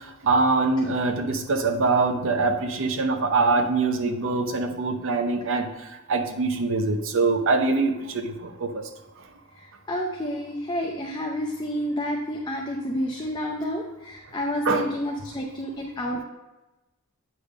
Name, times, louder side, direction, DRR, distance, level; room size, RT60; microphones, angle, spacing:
voice 1, 0.2-5.7 6.1-8.3 8.6-8.7 14.7-14.8, right 3 dB, 60° right, 5 dB, 0.8 m, -23 dB
voice 2, 9.6-16.2, equal, 20° left, 0 dB, 0.6 m, -30 dB
8.5 x 3.6 x 5.0 m, 1.0 s
head